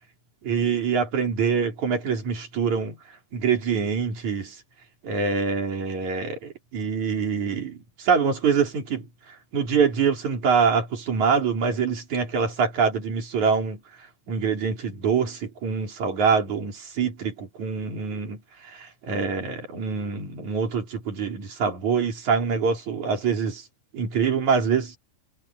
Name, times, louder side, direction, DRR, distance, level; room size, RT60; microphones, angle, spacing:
voice 1, 0.4-3.0 3.3-4.6 5.0-9.1 9.5-13.8 14.3-18.4 18.7-23.6 23.9-25.0, right 6 dB, 60° right, 5.4 m, -25 dB
omnidirectional pair, 3.8 m